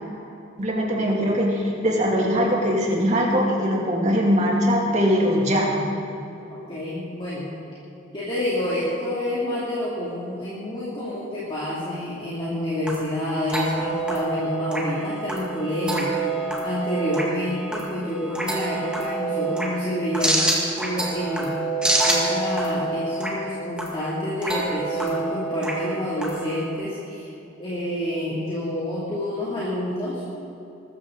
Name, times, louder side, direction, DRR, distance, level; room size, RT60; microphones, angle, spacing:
voice 1, 0.6-5.7, equal, 35° right, -2 dB, 2.8 m, -21 dB
voice 2, 6.5-7.5 8.1-16.2 16.6-21.5 22.1-27.3 27.6-30.2, left 1 dB, 25° left, -9 dB, 2.8 m, -28 dB
sound 1, 12.4-26.7, right 2 dB, 5° right, 1.9 m, -27 dB
21.5 x 13.5 x 4.0 m, 2.9 s
head